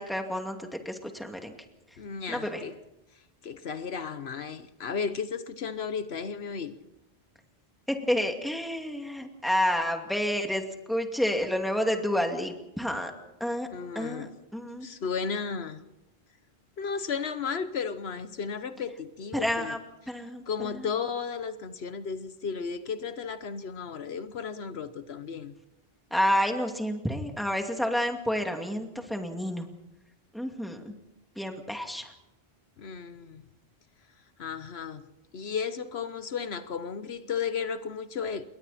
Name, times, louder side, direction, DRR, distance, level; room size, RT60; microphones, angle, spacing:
voice 1, 0.0-1.5 2.3-2.6 7.9-10.6 10.9-13.1 13.4-13.7 13.9-14.3 14.5-14.9 19.3-19.8 20.1-20.9 26.1-29.7 30.3-30.9 31.4-32.1, equal, ahead, 2.4 m, -29 dB
voice 2, 2.0-2.8 3.4-6.8 13.7-14.3 14.8-15.8 16.8-19.8 20.5-25.5 32.8-33.4 34.4-35.1 35.3-38.5, left 6 dB, 80° left, 1.2 m, -34 dB
28.5 x 22.0 x 4.3 m
omnidirectional pair, 1.1 m